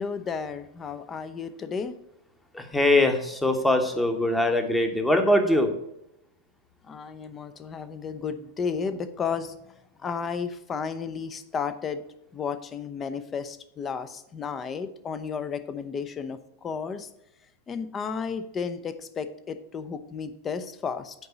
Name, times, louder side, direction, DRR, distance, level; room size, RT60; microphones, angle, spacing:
voice 1, 0.0-2.0 6.9-9.5 10.0-12.0 12.3-17.1 17.7-21.1, left 6 dB, 25° left, 11 dB, 0.7 m, -33 dB
voice 2, 2.5-5.7, left 1 dB, 5° left, 6 dB, 1.2 m, -22 dB
9.3 x 3.9 x 7.0 m, 0.83 s
figure-of-eight pair, 90°, 0 cm